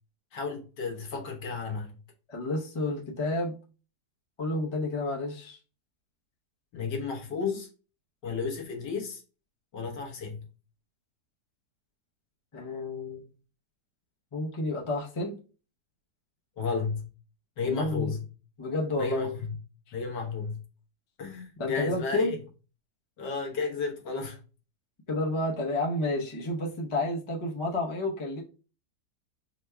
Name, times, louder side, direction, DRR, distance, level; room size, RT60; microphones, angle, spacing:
voice 1, 0.3-1.9 6.7-7.7 8.2-9.2 9.7-10.5 16.6-17.1 17.6-18.3 19.0-19.6 19.9-20.6 21.2-22.3 23.2-24.4, left 5 dB, 80° left, 1.7 m, -33 dB
voice 2, 2.3-3.6 4.4-5.6 12.5-13.2 14.3-15.4 17.6-18.1 18.6-19.3 21.6-22.4 25.1-28.4, left 2 dB, 40° left, 0.4 m, -30 dB
4.2 x 2.2 x 4.5 m
omnidirectional pair, 1.8 m